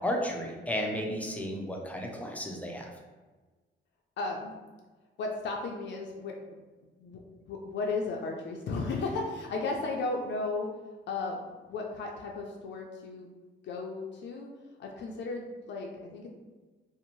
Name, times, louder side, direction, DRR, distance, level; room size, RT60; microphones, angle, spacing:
voice 1, 0.0-2.9, equal, 5° left, 0 dB, 0.5 m, -33 dB
voice 2, 4.2-4.5 5.2-6.6 7.0-7.2 7.5-10.7 11.1-11.4 11.7-13.3 13.6-14.5 14.8-16.3, left 3 dB, 65° left, 0 dB, 0.4 m, -34 dB
2.6 x 2.0 x 2.9 m, 1.3 s
cardioid pair, 90°, 20 cm